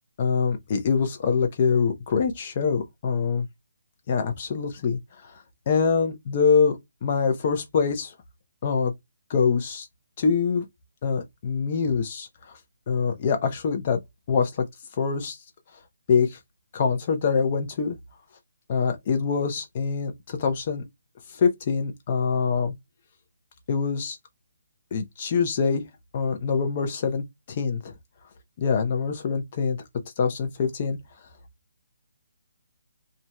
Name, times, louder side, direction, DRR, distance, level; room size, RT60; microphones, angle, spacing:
voice 1, 0.2-3.5 4.1-5.0 5.7-8.1 8.6-8.9 9.3-9.9 10.2-10.6 11.0-12.3 12.9-14.0 14.3-14.6 15.0-15.4 16.1-16.4 16.7-18.0 18.7-20.8 21.3-22.7 23.7-24.2 24.9-25.8 26.1-27.9 28.6-29.8 30.2-31.0, left 5 dB, 40° left, 0.8 m, -24 dB
2.7 x 2.5 x 2.2 m
figure-of-eight pair, 150°, 0 cm